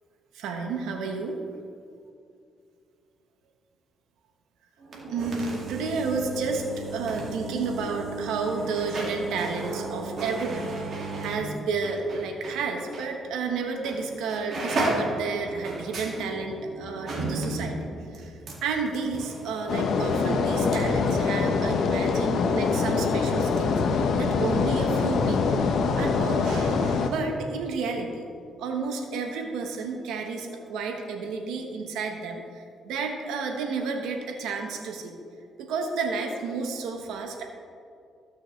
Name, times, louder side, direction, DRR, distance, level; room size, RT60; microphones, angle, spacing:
voice 1, 0.3-1.4 5.1-17.7 18.1-18.3 18.6-25.7 26.0-28.3 28.6-35.1 35.6-37.4, right 4 dB, 90° right, 3 dB, 1.1 m, -31 dB
sound 1, 4.8-12.6 12.9-13.1 13.8-14.0 14.3-20.8 21.1-21.2, right 2 dB, 55° right, 2.3 m, -34 dB
sound 2, 19.7-27.1, left 5 dB, 65° left, 0.7 m, -24 dB
15.5 x 6.4 x 3.2 m, 2.4 s
cardioid pair, 90°, 0 cm